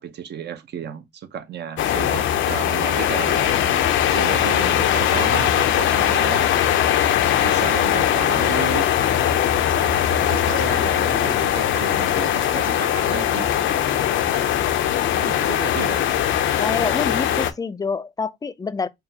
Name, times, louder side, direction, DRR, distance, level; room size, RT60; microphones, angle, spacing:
voice 1, 0.0-3.7 4.1-6.5 7.4-9.1 10.2-13.5 14.3-14.5 15.1-16.0, right 8 dB, 60° right, 0.7 m, -33 dB
sound 1, 1.8-17.5, left 10 dB, 75° left, 0.5 m, -20 dB
voice 2, 16.6-18.9, left 4 dB, 20° left, 0.3 m, -27 dB
5.0 x 2.3 x 2.7 m
cardioid pair, 90°, 20 cm